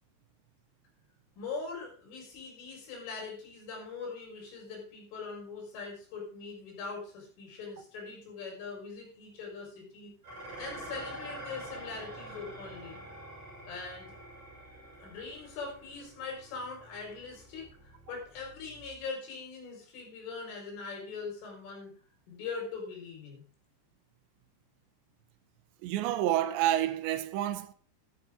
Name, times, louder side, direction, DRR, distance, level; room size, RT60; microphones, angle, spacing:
voice 1, 1.4-10.2 10.6-13.0 13.7-14.2 15.0-21.9 22.3-23.4, left 4 dB, 80° left, 7.4 m, -42 dB
Dishes pots and pans, 10.2-19.1, right 1 dB, 40° right, 7.2 m, -47 dB
voice 2, 25.8-27.7, right 13 dB, 80° right, 2.9 m, -29 dB
13.5 x 11.5 x 3.7 m
omnidirectional pair, 5.6 m